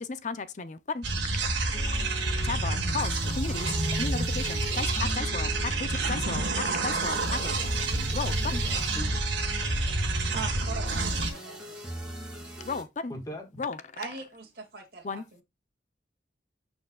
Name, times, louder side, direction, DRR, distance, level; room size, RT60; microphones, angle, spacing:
voice 1, 0.0-1.1 2.4-7.5 8.1-8.6 12.6-13.1 13.6-13.8 15.0-15.2, left 4 dB, 40° left, 0.6 m, -34 dB
sound 1, 1.0-11.3, right 2 dB, 75° right, 1.9 m, -28 dB
sound 2, 1.7-12.8, equal, 5° right, 2.8 m, -43 dB
voice 2, 7.9-9.3 12.4-12.5 13.1-13.6, equal, 20° left, 1.6 m, -42 dB
voice 3, 10.3-11.9 14.0-15.4, right 4 dB, 55° right, 2.1 m, -41 dB
11.5 x 4.6 x 2.3 m
head